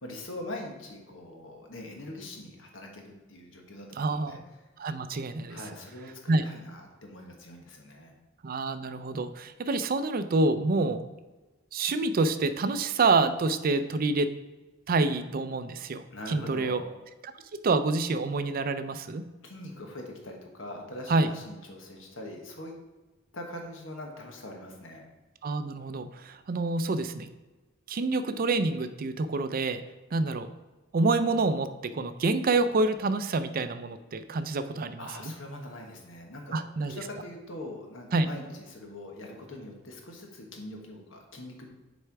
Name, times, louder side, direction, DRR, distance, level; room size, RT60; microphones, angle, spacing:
voice 1, 0.0-4.4 5.5-8.1 16.1-16.9 19.4-22.7 23.3-25.1 35.0-41.7, left 1 dB, 75° left, 2 dB, 1.3 m, -42 dB
voice 2, 4.0-4.4 4.8-5.6 6.3-6.4 8.4-11.0 11.7-14.3 14.9-16.8 17.2-19.2 21.1-21.3 25.4-27.3 27.9-29.8 30.1-30.5 30.9-35.3 36.5-36.9 38.1-38.3, right 3 dB, 50° right, 11 dB, 0.4 m, -27 dB
6.7 x 4.3 x 4.7 m, 1.2 s
head